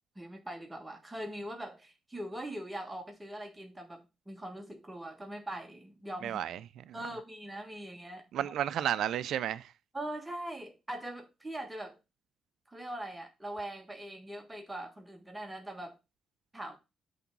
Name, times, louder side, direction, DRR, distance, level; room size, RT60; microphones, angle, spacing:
voice 1, 0.1-6.4 6.9-8.5 9.9-12.0 12.7-16.0 16.5-16.8, right 1 dB, 15° right, 1.5 m, -42 dB
voice 2, 6.2-7.0 8.3-9.7, right 10 dB, 75° right, 0.5 m, -33 dB
8.1 x 3.4 x 6.1 m
cardioid pair, 90°, 0 cm